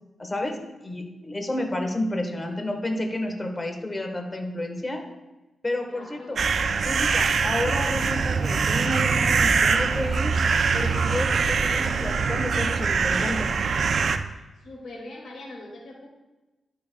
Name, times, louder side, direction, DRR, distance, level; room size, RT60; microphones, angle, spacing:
voice 1, 0.2-5.0 5.6-6.4 6.8-10.3 10.7-13.5, left 1 dB, 30° left, 4 dB, 1.3 m, -30 dB
voice 2, 5.9-6.4 14.6-16.1, left 2 dB, 75° left, -3 dB, 2.3 m, -41 dB
sound 1, 6.4-14.2, right 5 dB, 70° right, 0.4 m, -23 dB
11.5 x 6.3 x 2.3 m, 1.1 s
cardioid pair, 60°, 0 cm